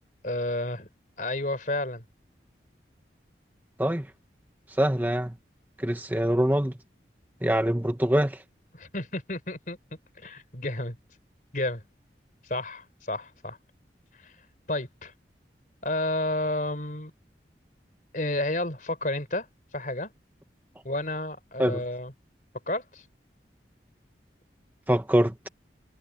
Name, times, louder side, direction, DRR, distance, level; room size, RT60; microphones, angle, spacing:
voice 1, 0.2-0.9 1.2-2.0 8.8-9.8 10.2-11.0 11.5-11.8 12.5-13.6 14.2-14.3 14.7-15.1 15.8-17.1 18.1-19.5 19.7-20.1 20.8-22.1 22.7-23.0, left 1 dB, 50° left, 4.3 m, -31 dB
voice 2, 4.8-5.3 5.8-6.7 7.4-8.4 21.6-21.8 24.9-25.5, right 1 dB, 10° right, 0.9 m, -24 dB
head